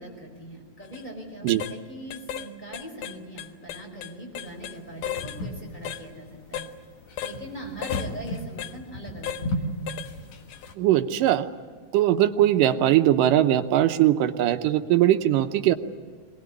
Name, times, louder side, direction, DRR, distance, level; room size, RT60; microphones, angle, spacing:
voice 1, 0.0-6.7 7.2-9.8, right 1 dB, 15° left, 0 dB, 5.2 m, -41 dB
sound 1, 0.8-1.0 1.5-1.8 2.1-2.5 2.7-4.8 5.0-5.4 5.8-6.0 6.5-6.7 7.2-7.4 7.8-8.1 8.6-8.7 9.2-9.4 9.9-10.1 10.5-10.7, left 9 dB, 75° left, 2.3 m, -34 dB
sound 2, 4.5-10.7, left 1 dB, 60° left, 2.8 m, -35 dB
voice 2, 10.8-11.5 11.9-15.7, right 12 dB, 80° right, 9 dB, 2.4 m, -20 dB
23.0 x 19.5 x 9.7 m, 1.5 s
omnidirectional pair, 3.8 m